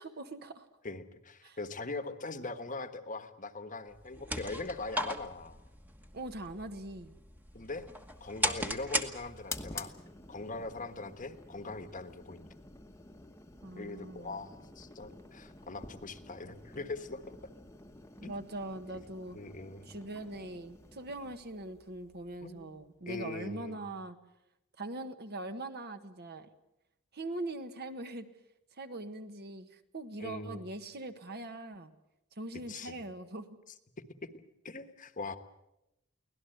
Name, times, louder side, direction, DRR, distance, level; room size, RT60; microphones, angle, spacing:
voice 1, 0.0-0.7 1.4-1.6 6.1-7.1 13.6-14.5 18.2-19.4 19.9-24.2 24.8-26.5 27.1-28.3 28.8-31.9 32.4-33.5, right 2 dB, 45° right, 8 dB, 1.4 m, -42 dB
voice 2, 0.8-5.6 7.5-7.9 8.2-9.9 10.3-12.5 13.8-17.3 18.2-18.3 18.9-19.0 19.3-19.9 22.4-22.8 23.0-23.9 30.2-30.7 32.7-33.0 34.0-34.3 34.6-35.4, left 3 dB, 35° left, 9 dB, 1.3 m, -41 dB
sound 1, 3.9-9.7, equal, 10° right, 1.3 m, -37 dB
sound 2, 7.7-23.0, left 3 dB, 15° left, 1.2 m, -50 dB
24.0 x 17.5 x 7.9 m, 0.87 s
head